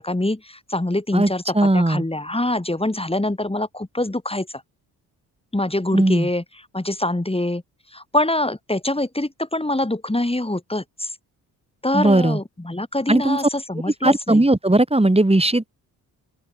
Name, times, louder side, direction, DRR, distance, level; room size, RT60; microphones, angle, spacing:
voice 1, 0.0-4.5 5.5-6.4 6.7-7.6 7.9-11.1 11.8-14.4, left 1 dB, 15° left, 6.6 m, -24 dB
voice 2, 1.1-2.0 5.9-6.3 11.9-12.4 13.1-13.4 14.0-15.7, right 2 dB, 15° right, 6.1 m, -18 dB
open air
hypercardioid pair, 45°, 44 cm